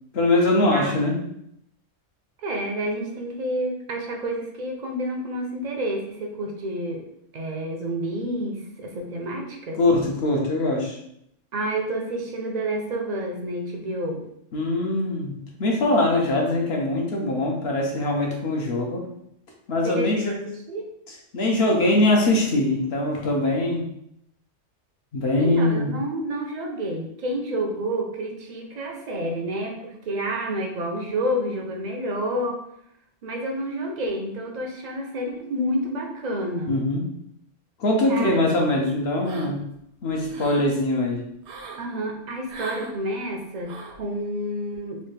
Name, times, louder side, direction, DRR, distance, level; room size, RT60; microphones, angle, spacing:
voice 1, 0.1-1.1 9.8-11.0 14.5-19.0 19.7-20.3 21.3-23.8 25.1-25.9 36.7-37.0 37.8-39.6 40.0-41.2, left 2 dB, 60° left, 0 dB, 0.9 m, -22 dB
voice 2, 2.4-7.0 7.3-9.8 11.5-14.2 19.8-20.9 25.4-32.6 33.2-36.8 38.1-38.3 41.8-45.0, right 1 dB, 50° right, 1 dB, 0.5 m, -29 dB
sound 1, 39.2-39.8 40.1-40.7 41.4-41.8 42.5-42.9 43.6-44.0, right 4 dB, 70° right, 0.8 m, -39 dB
3.2 x 2.5 x 3.2 m, 0.74 s
omnidirectional pair, 1.3 m